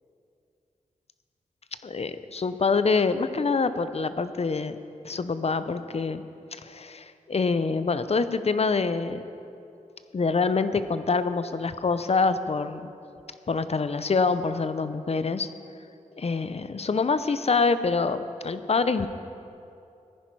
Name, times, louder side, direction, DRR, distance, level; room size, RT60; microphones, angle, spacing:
voice 1, 1.8-4.8 5.0-6.2 6.5-9.2 10.1-12.9 13.5-15.5 16.2-19.1, left 4 dB, 50° left, 12 dB, 0.7 m, -25 dB
14.5 x 10.5 x 4.7 m, 2.7 s
cardioid pair, 50°, 14 cm